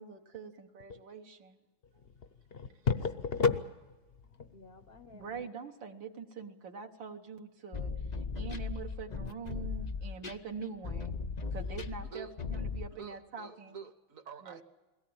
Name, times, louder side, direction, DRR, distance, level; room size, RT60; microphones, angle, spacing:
voice 1, 0.0-1.6 1.9-2.0 5.0-11.2 11.5-13.8 14.4-14.6, right 5 dB, 70° right, 2.0 m, -44 dB
voice 2, 2.5-3.7 4.4-5.5 11.4-11.5, left 5 dB, 50° left, 0.7 m, -33 dB
sound 1, 7.7-12.9, left 5 dB, 80° left, 0.3 m, -37 dB
voice 3, 12.9-14.6, right 6 dB, 50° right, 1.4 m, -47 dB
22.0 x 17.5 x 8.7 m
omnidirectional pair, 2.1 m